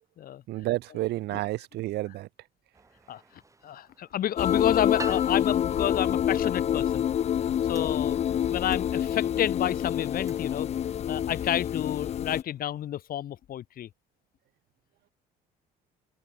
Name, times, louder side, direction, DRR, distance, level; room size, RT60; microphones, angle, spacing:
voice 1, 0.5-2.3, right 17 dB, 80° right, 3.6 m, -30 dB
sound 1, 2.7-12.9, right 3 dB, 20° right, 5.0 m, -50 dB
voice 2, 3.6-7.1 7.7-8.2 8.5-10.7 11.1-13.9, left 11 dB, 60° left, 3.3 m, -30 dB
sound 2, 4.4-12.4, left 10 dB, 40° left, 0.5 m, -27 dB
open air
cardioid pair, 110°, 17 cm